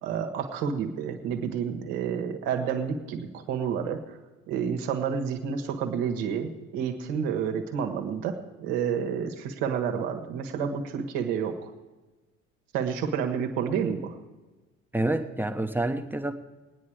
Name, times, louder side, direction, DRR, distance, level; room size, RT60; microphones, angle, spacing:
voice 1, 0.0-4.0 4.5-11.7 12.7-14.2, right 7 dB, 65° right, 4 dB, 1.5 m, -29 dB
voice 2, 14.9-16.3, right 2 dB, 5° right, 6 dB, 1.0 m, -28 dB
18.0 x 9.8 x 4.8 m, 1.2 s
figure-of-eight pair, 50°, 38 cm